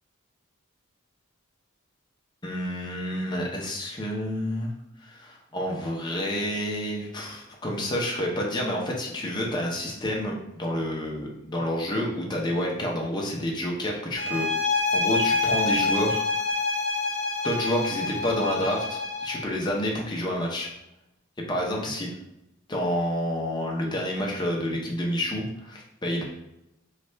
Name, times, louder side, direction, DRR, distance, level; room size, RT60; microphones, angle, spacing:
voice 1, 2.4-4.7 5.0-14.5 14.9-16.2 17.4-20.7 21.5-22.1 22.7-26.2, equal, 20° left, -1 dB, 0.6 m, -29 dB
sound 1, 14.2-19.4, left 3 dB, 65° left, 0.6 m, -27 dB
3.2 x 2.4 x 4.3 m, 0.87 s
head